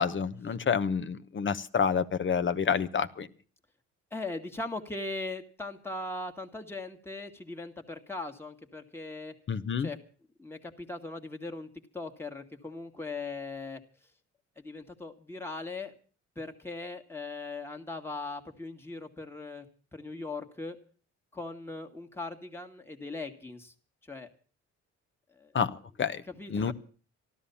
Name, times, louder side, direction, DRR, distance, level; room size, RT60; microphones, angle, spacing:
voice 1, 0.0-3.3 9.5-9.9 25.5-26.2 26.5-26.7, left 6 dB, 40° left, 13 dB, 1.1 m, -28 dB
voice 2, 4.1-9.3 9.8-10.0 10.4-11.7 11.9-14.1 14.6-15.9 16.4-19.7 19.9-20.8 21.3-23.7 24.0-24.3 25.3-25.5 26.3-26.7, left 2 dB, 10° left, 4 dB, 1.8 m, -39 dB
13.5 x 12.5 x 7.0 m, 0.40 s
cardioid pair, 90°, 30 cm